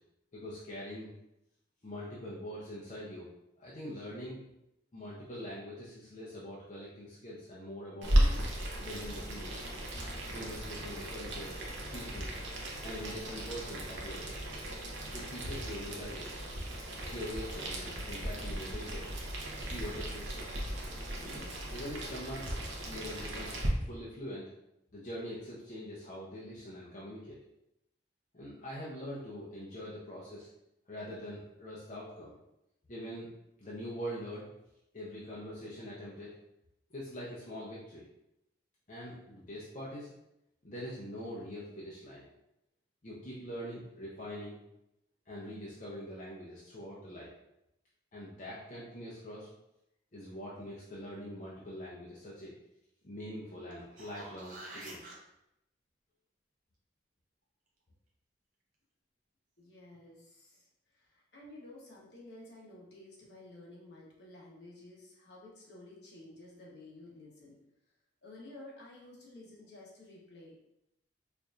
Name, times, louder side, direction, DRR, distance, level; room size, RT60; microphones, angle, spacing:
voice 1, 0.3-1.1 1.8-3.3 3.6-4.4 4.9-8.2 8.8-9.7 10.2-11.6 11.9-12.3 12.8-14.4 15.1-16.4 17.1-19.1 19.7-20.5 21.2-22.5 22.8-24.5 24.9-27.4 28.3-30.5 30.9-32.3 32.9-33.3 33.6-34.5 34.9-36.3 36.9-38.1 38.9-40.1 40.6-42.3 43.0-44.6 45.3-47.3 48.1-49.5 50.1-52.5 53.0-55.1, equal, 40° left, -7 dB, 0.6 m, -43 dB
Boiling, 8.0-23.7, right 1 dB, 80° right, 0.7 m, -36 dB
sound 1, 53.7-55.2 59.9-60.0, right 2 dB, 45° right, 0.7 m, -47 dB
voice 2, 59.6-67.6 68.2-70.5, left 2 dB, 60° left, -4 dB, 1.0 m, -52 dB
4.5 x 2.6 x 2.4 m, 0.84 s
head